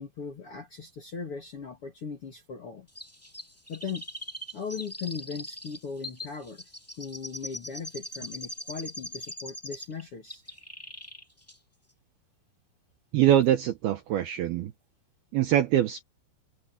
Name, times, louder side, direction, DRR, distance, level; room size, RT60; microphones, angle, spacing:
voice 1, 0.0-2.9 3.7-4.0 4.5-6.6 7.0-10.4, left 5 dB, 45° left, 2.0 m, -38 dB
Chirp tweet, 2.9-10.0 10.3-11.2 11.5-11.6, equal, 5° left, 1.1 m, -41 dB
voice 2, 13.1-14.7 15.3-16.0, right 11 dB, 75° right, 2.4 m, -23 dB
open air
omnidirectional pair, 5.5 m